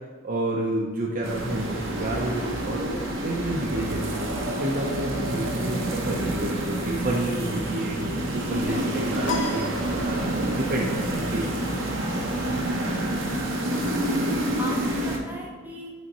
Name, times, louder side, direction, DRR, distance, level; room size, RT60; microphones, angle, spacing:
voice 1, 0.2-11.5 12.1-12.2, right 1 dB, 45° right, -2 dB, 0.7 m, -30 dB
sound 1, 1.2-15.2, right 1 dB, 80° right, 0.9 m, -28 dB
voice 2, 8.6-9.4 11.8-12.1 12.8-13.1 13.7-14.0 14.6-15.9, equal, 10° right, -2 dB, 0.9 m, -39 dB
sound 2, 9.3-10.6, left 4 dB, 75° left, 0.7 m, -34 dB
7.5 x 4.1 x 4.1 m, 1.5 s
head